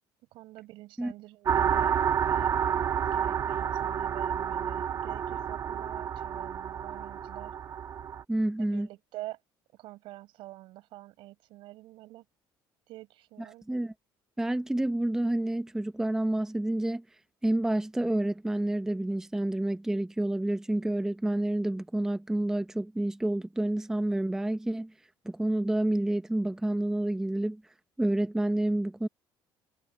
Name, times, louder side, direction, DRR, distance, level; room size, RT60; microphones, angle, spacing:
voice 1, 0.3-1.9 2.2-2.5 3.1-7.6 8.6-9.4 9.8-12.2 12.9-13.6, right 17 dB, 75° right, 5.5 m, -47 dB
sound 1, 1.5-8.2, right 8 dB, 40° right, 1.7 m, -29 dB
voice 2, 8.3-8.9 13.7-13.9 14.4-17.0 17.4-24.9 25.2-27.6 28.0-29.1, right 1 dB, 5° right, 0.7 m, -29 dB
cardioid pair, 135°, 9 cm